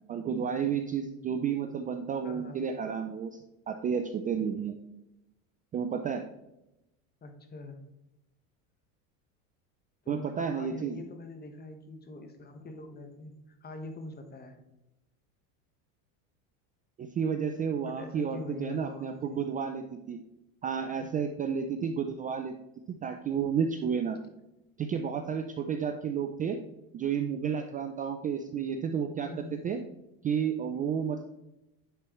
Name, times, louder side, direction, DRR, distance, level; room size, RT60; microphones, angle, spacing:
voice 1, 0.1-3.4 3.7-4.8 5.7-6.2 10.1-11.0 17.0-20.2 20.6-22.5 22.9-24.2 24.8-26.6 26.9-29.3 29.6-29.8 30.2-31.2, right 7 dB, 20° right, 6 dB, 0.3 m, -31 dB
voice 2, 2.2-2.6 7.2-7.8 10.0-14.6 17.8-19.4 29.2-29.6, left 2 dB, 25° left, 5 dB, 1.2 m, -44 dB
9.9 x 4.5 x 3.1 m, 0.91 s
supercardioid pair, 115°, 41 cm